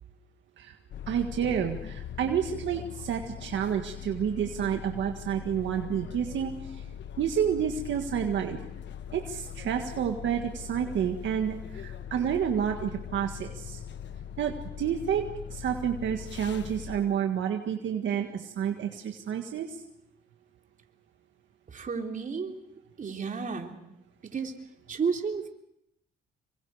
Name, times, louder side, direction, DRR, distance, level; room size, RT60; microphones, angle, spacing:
sound 1, 0.9-17.0, left 9 dB, 65° left, 1.0 m, -41 dB
voice 1, 1.1-6.8 7.2-8.6 9.1-13.8 14.4-19.8, right 8 dB, 70° right, 4 dB, 1.8 m, -30 dB
voice 2, 21.7-22.6 23.0-23.7 24.2-24.5 24.9-25.5, right 5 dB, 40° right, 3 dB, 3.3 m, -32 dB
27.0 x 24.0 x 5.0 m, 0.79 s
cardioid pair, 90°, 20 cm